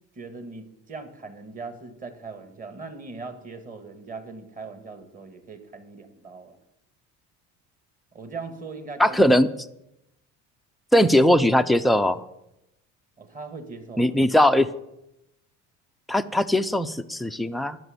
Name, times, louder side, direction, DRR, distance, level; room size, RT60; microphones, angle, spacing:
voice 1, 0.1-6.6 8.1-9.2 13.2-14.2, right 4 dB, 25° right, 8 dB, 1.6 m, -40 dB
voice 2, 9.0-9.5 10.9-12.2 14.0-14.7 16.1-17.8, left 1 dB, ahead, 8 dB, 0.4 m, -19 dB
12.5 x 6.1 x 9.4 m, 0.86 s
cardioid pair, 140°, 32 cm